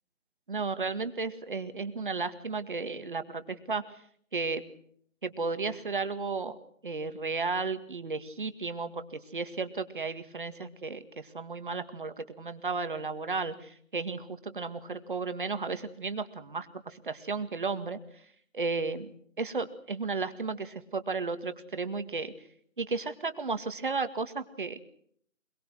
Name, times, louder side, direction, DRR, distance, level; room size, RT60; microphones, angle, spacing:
voice 1, 0.5-3.8 4.3-4.6 5.2-6.6 6.8-18.0 18.5-22.3 22.8-24.8, right 4 dB, 40° right, 10 dB, 2.0 m, -34 dB
25.5 x 22.5 x 6.2 m, 0.63 s
figure-of-eight pair, 175°, 40 cm